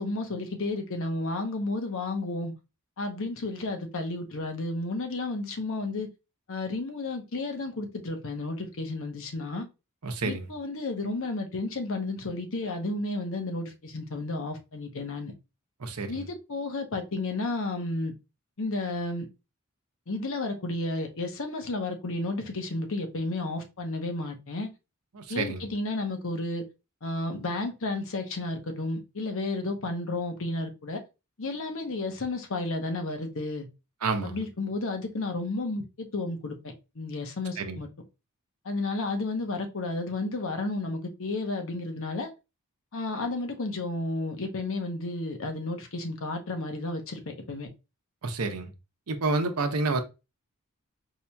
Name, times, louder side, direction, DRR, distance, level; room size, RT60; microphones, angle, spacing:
voice 1, 0.0-2.5 3.0-6.1 6.5-9.7 10.2-15.3 16.1-18.1 18.6-19.3 20.1-24.7 25.3-26.6 27.0-31.0 31.4-33.7 34.2-37.9 38.6-42.3 42.9-47.7, left 2 dB, 65° left, 0.8 m, -32 dB
voice 2, 10.0-10.4 15.8-16.2 25.1-25.6 34.0-34.4 37.6-37.8 48.2-48.7 49.1-50.0, right 3 dB, 85° right, 0.7 m, -29 dB
4.7 x 2.8 x 2.2 m
head